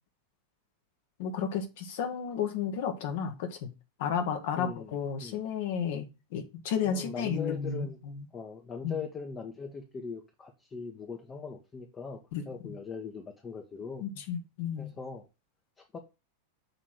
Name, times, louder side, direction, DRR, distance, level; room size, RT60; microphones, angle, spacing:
voice 1, 1.2-3.7 4.0-8.2 8.8-9.0 12.3-12.5 14.0-14.9, left 7 dB, 50° left, 1.6 m, -32 dB
voice 2, 4.6-5.4 6.8-8.0 8.3-12.2 12.5-14.0 14.8-15.2 15.9-16.0, left 5 dB, 20° left, 1.2 m, -40 dB
6.8 x 3.7 x 6.1 m
figure-of-eight pair, 90°, 0 cm